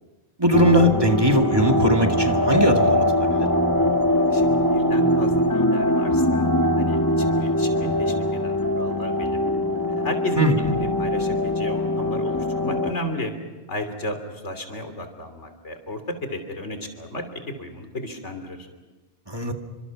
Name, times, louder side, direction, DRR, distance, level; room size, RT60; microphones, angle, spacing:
voice 1, 0.4-3.5 10.4-10.5 19.3-19.5, equal, 20° right, 3 dB, 2.0 m, -20 dB
sound 1, 0.5-12.9, left 1 dB, 20° left, 1.2 m, -22 dB
voice 2, 4.1-6.5 6.8-9.4 10.0-10.5 10.7-13.3 13.7-18.7, left 1 dB, 85° left, 7 dB, 3.5 m, -33 dB
29.5 x 25.5 x 6.1 m, 1.2 s
omnidirectional pair, 1.2 m